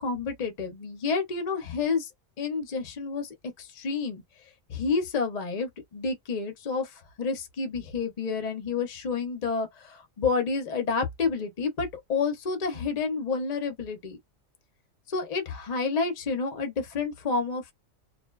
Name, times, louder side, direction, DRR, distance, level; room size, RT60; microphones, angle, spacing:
voice 1, 0.0-2.1 2.4-3.3 3.6-4.2 4.7-14.2 15.1-17.7, left 4 dB, 40° left, 0.6 m, -29 dB
2.5 x 2.2 x 2.2 m
omnidirectional pair, 1.4 m